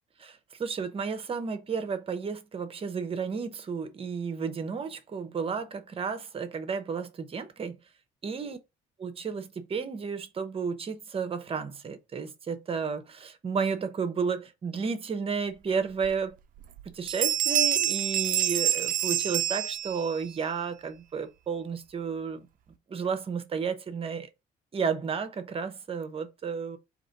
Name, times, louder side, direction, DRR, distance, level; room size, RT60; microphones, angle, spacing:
voice 1, 0.2-7.8 8.2-8.6 9.0-16.3 16.8-22.5 22.9-24.3 24.7-26.8, right 5 dB, 35° right, 0.9 m, -32 dB
sound 1, 16.0-16.1 16.6-16.8 17.1-20.2, right 11 dB, 55° right, 0.5 m, -27 dB
3.9 x 3.0 x 4.0 m
cardioid pair, 110°, 17 cm